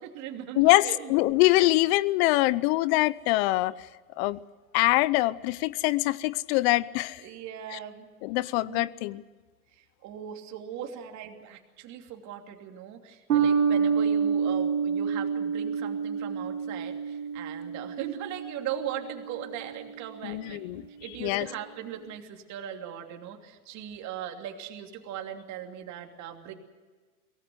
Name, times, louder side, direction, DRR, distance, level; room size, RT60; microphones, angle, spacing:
voice 1, 0.0-1.1 7.2-8.1 8.6-8.8 9.7-20.6 21.0-26.5, right 9 dB, 40° right, 4 dB, 2.9 m, -39 dB
voice 2, 0.6-3.9 4.2-4.4 4.7-7.2 7.7-7.8 8.2-9.2 20.2-20.8 21.2-21.5, left 18 dB, 45° left, 21 dB, 0.8 m, -24 dB
sound 1, 13.3-20.0, right 6 dB, 80° right, 3.1 m, -28 dB
23.5 x 18.0 x 8.1 m, 1.4 s
hypercardioid pair, 105°, 44 cm